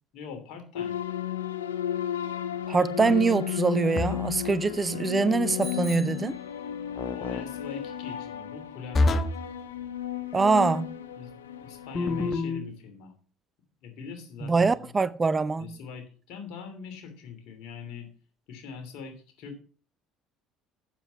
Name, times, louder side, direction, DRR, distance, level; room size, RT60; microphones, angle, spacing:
voice 1, 0.1-1.0 7.1-9.2 11.2-11.3 11.6-13.1 13.8-14.9 15.6-18.1 18.5-19.6, left 6 dB, 65° left, 2.9 m, -42 dB
sound 1, 0.8-12.3, left 11 dB, 90° left, 0.6 m, -34 dB
voice 2, 2.7-6.4 10.3-11.0 14.4-15.8, right 4 dB, 25° right, 0.6 m, -24 dB
sound 2, 3.9-4.4 7.0-7.4 8.9-9.5 11.9-12.7, left 3 dB, 40° left, 1.1 m, -27 dB
Bicycle bell, 5.6-7.1, right 3 dB, 5° left, 5.2 m, -45 dB
7.5 x 7.1 x 5.8 m
hypercardioid pair, 65°, 0 cm